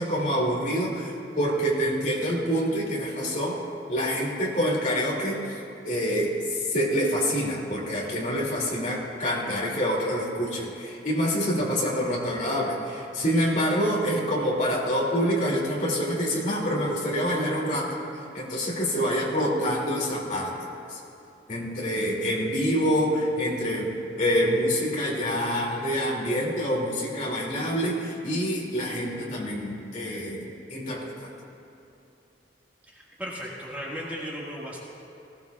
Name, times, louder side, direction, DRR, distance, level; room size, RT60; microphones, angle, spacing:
voice 1, 0.0-3.6 3.9-5.6 5.8-18.0 18.3-21.0 21.5-31.3, equal, 45° left, -3 dB, 2.5 m, -26 dB
voice 2, 32.9-34.8, equal, 10° right, -5 dB, 1.7 m, -36 dB
19.0 x 16.0 x 2.4 m, 2.9 s
head